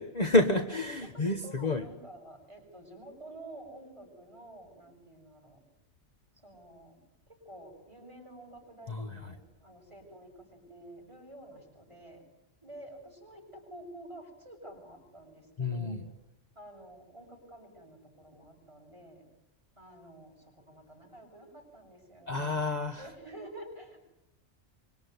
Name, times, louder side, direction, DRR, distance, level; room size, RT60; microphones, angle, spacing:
voice 1, 0.0-1.8 8.9-9.3 15.6-16.0 22.3-23.0, left 2 dB, 35° left, 6 dB, 1.5 m, -29 dB
voice 2, 1.0-5.6 6.4-7.0 7.3-12.2 12.6-16.0 16.5-19.3 19.8-22.4 22.9-24.0, right 1 dB, 25° right, 1 dB, 7.5 m, -50 dB
25.5 x 24.0 x 9.5 m, 0.85 s
omnidirectional pair, 1.2 m